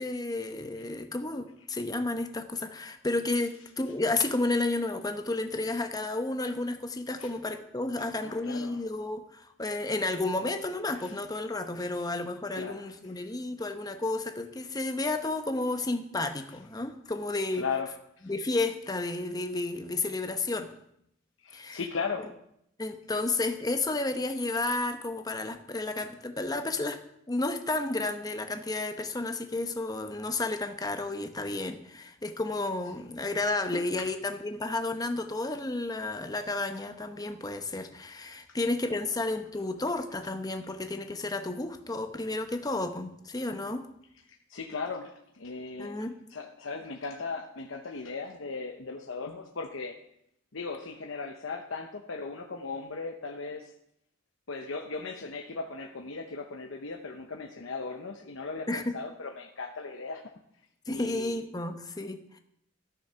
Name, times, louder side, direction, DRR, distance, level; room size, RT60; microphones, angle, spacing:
voice 1, 0.0-17.6 18.2-20.7 21.5-21.8 22.8-27.0 27.3-43.9 45.8-46.1 58.7-59.0 60.9-62.4, left 2 dB, 20° left, 6 dB, 0.9 m, -32 dB
voice 2, 8.0-8.8 10.4-10.5 11.0-11.1 12.5-12.9 17.5-17.9 18.2-18.3 21.4-22.2 33.7-33.8 38.9-39.0 44.5-46.0 46.3-49.9 50.5-53.7 54.5-60.2 60.9-61.4, left 4 dB, 75° left, 2 dB, 0.9 m, -37 dB
13.5 x 6.4 x 5.7 m, 0.75 s
head